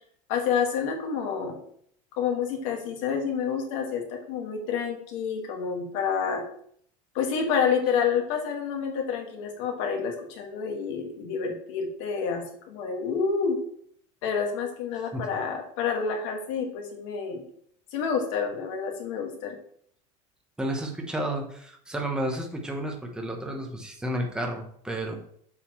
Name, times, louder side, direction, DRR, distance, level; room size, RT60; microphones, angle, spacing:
voice 1, 0.3-1.6 2.2-6.4 7.1-13.6 14.2-17.4 17.9-19.6, left 6 dB, 70° left, 2 dB, 1.9 m, -28 dB
voice 2, 20.6-25.2, right 1 dB, 5° right, 1 dB, 1.0 m, -31 dB
7.1 x 6.7 x 3.1 m, 0.64 s
cardioid pair, 165°, 17 cm